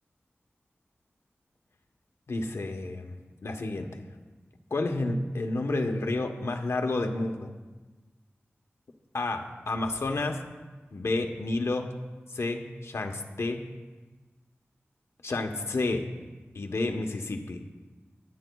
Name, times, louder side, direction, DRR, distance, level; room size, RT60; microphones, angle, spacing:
voice 1, 2.3-3.2 3.4-4.0 4.7-7.5 9.1-10.4 10.9-11.9 12.3-13.7 15.2-16.1 16.5-17.6, left 2 dB, 80° left, 4 dB, 1.0 m, -30 dB
19.0 x 10.5 x 2.3 m, 1.2 s
wide cardioid pair, 70°, 5 cm